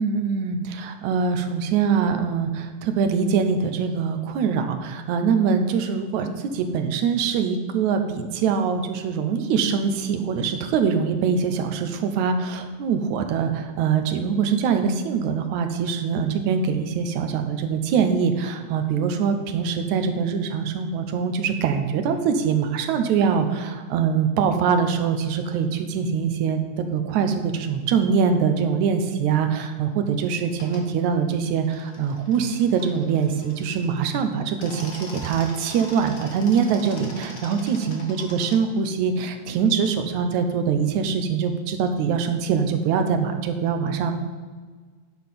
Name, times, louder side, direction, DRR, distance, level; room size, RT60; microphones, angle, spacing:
voice 1, 0.0-44.1, right 6 dB, 70° right, 6 dB, 2.1 m, -23 dB
sound 1, 30.5-30.8 31.6-34.0 34.4-38.6, left 2 dB, 40° left, 1.3 m, -42 dB
10.5 x 5.5 x 5.9 m, 1.5 s
omnidirectional pair, 3.8 m